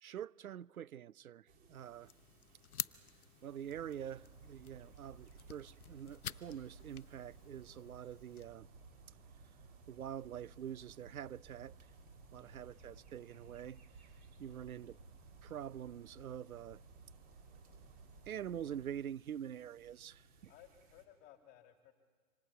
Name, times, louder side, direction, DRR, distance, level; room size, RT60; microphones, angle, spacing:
voice 1, 0.0-2.1 3.4-8.7 9.9-11.7 12.3-13.8 14.4-15.0 15.4-16.8 18.3-20.5, right 9 dB, 70° right, 0.7 m, -46 dB
sound 1, 1.5-21.1, right 3 dB, 20° right, 3.0 m, -67 dB
sound 2, 2.0-8.5, left 8 dB, 80° left, 0.9 m, -49 dB
sound 3, 3.7-18.8, right 4 dB, 35° right, 4.3 m, -58 dB
voice 2, 12.3-13.0 14.5-15.1 20.5-21.9, left 11 dB, 25° left, 2.7 m, -62 dB
26.5 x 26.0 x 5.6 m
hypercardioid pair, 135°, 44 cm